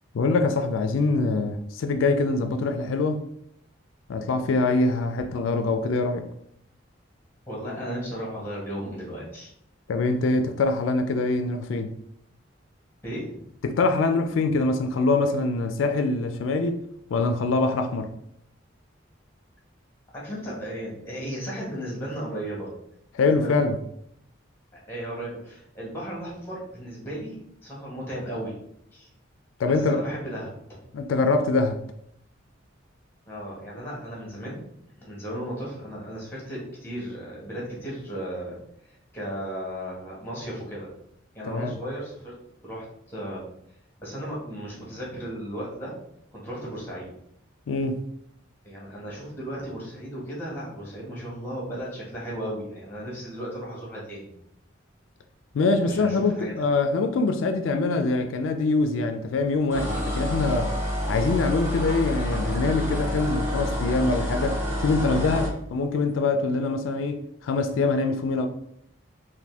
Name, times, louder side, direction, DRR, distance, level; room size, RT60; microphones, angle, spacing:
voice 1, 0.1-3.2 4.1-6.3 9.9-11.9 13.6-16.8 17.1-18.1 23.1-23.8 29.6-30.0 30.9-31.8 41.4-41.8 47.7-48.0 55.5-60.7 61.1-68.5, left 3 dB, 85° left, 0.4 m, -24 dB
voice 2, 7.5-9.5 13.0-13.5 20.1-22.7 23.3-23.6 24.9-28.5 28.9-29.1 29.6-30.8 33.3-34.6 34.9-38.6 38.8-40.9 41.3-42.3 42.6-43.4 44.0-45.9 46.3-47.1 48.6-54.3 55.9-56.5, equal, 10° left, 1.6 m, -35 dB
sound 1, 59.7-65.6, equal, 15° right, 1.0 m, -28 dB
4.2 x 2.6 x 3.4 m
head